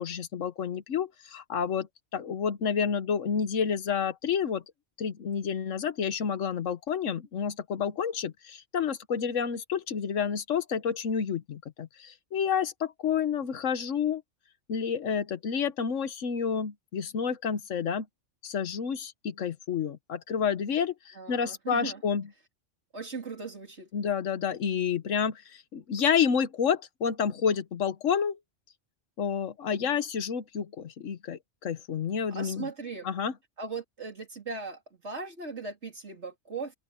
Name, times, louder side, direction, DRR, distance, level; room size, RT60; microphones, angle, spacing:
voice 1, 0.0-4.6 5.0-14.2 14.7-18.1 18.4-22.3 23.9-28.4 29.2-32.7 33.0-33.3, left 7 dB, 90° left, 1.4 m, -29 dB
voice 2, 21.2-22.0 22.9-23.9 32.3-33.1 33.6-36.7, right 4 dB, 65° right, 3.9 m, -38 dB
omnidirectional pair, 1.3 m